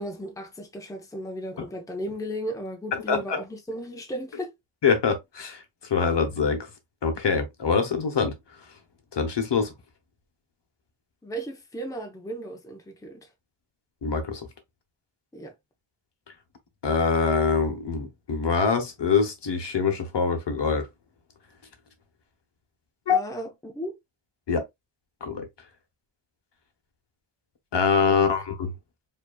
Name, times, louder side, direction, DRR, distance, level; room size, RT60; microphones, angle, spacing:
voice 1, 0.0-4.5 11.2-13.3 15.3-15.5 23.1-24.0 28.1-28.3, equal, 5° left, 0.7 m, -35 dB
voice 2, 3.1-3.4 4.8-5.6 5.9-6.7 7.0-8.3 9.1-9.7 14.0-14.4 16.8-20.9 23.1-23.2 24.5-24.6 25.2-25.5 27.7-28.7, left 5 dB, 60° left, 1.0 m, -24 dB
5.0 x 2.8 x 2.2 m
wide cardioid pair, 165°, 48 cm